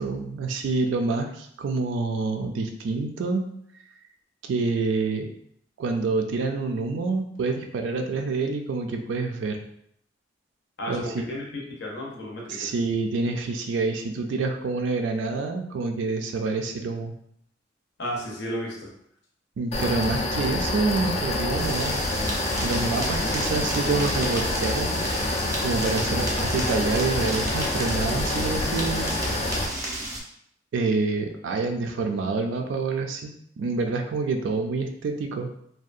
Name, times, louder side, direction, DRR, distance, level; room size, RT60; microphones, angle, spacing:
voice 1, 0.0-3.5 4.4-5.3 5.8-9.6 10.9-11.2 12.5-17.1 19.6-22.0 22.6-25.0 25.6-29.1 30.7-35.5, right 3 dB, 70° right, 4 dB, 0.3 m, -27 dB
voice 2, 10.8-12.7 18.0-18.9 26.0-26.3, equal, 65° left, -1 dB, 0.6 m, -33 dB
sound 1, 19.7-29.7, left 1 dB, 35° left, 0.3 m, -27 dB
sound 2, 21.6-30.2, right 1 dB, 20° right, 0.5 m, -33 dB
2.7 x 2.2 x 2.4 m, 0.71 s
head